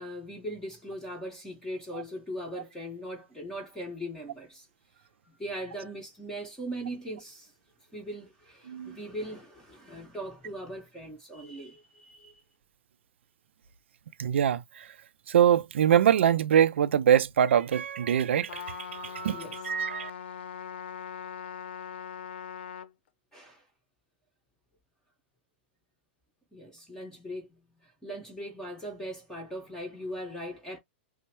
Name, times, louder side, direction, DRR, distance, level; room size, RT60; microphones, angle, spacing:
voice 1, 0.0-4.7 5.3-7.5 7.9-12.4 19.3-19.6 23.3-23.6 26.5-30.8, equal, 10° left, 1.6 m, -40 dB
voice 2, 14.2-14.9 15.3-20.1, right 9 dB, 85° right, 0.5 m, -24 dB
Trumpet, 18.5-22.9, left 8 dB, 70° left, 0.7 m, -41 dB
5.3 x 2.1 x 3.1 m
hypercardioid pair, 145°, 6 cm